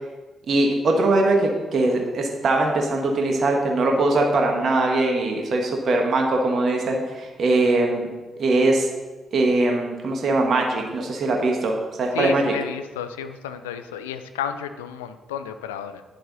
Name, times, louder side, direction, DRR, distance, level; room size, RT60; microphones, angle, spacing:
voice 1, 0.5-8.1 8.4-8.9 9.3-12.5, right 2 dB, 55° right, 1 dB, 1.5 m, -21 dB
voice 2, 12.1-16.0, left 8 dB, 85° left, 10 dB, 0.5 m, -32 dB
10.5 x 7.7 x 4.2 m, 1.2 s
hypercardioid pair, 40°, 0 cm